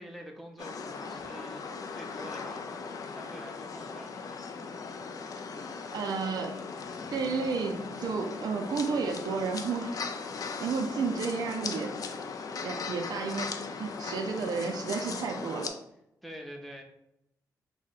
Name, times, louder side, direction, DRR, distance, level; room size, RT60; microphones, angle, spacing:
voice 1, 0.0-2.7 3.0-4.4 16.2-16.8, equal, ahead, 2 dB, 0.5 m, -46 dB
sound 1, 0.6-15.7, left 5 dB, 60° left, 0.3 m, -38 dB
voice 2, 5.9-6.6 7.1-10.0 10.6-12.0 12.6-15.7, right 5 dB, 75° right, 4 dB, 0.4 m, -32 dB
2.7 x 2.0 x 4.0 m, 0.82 s
cardioid pair, 80°, 7 cm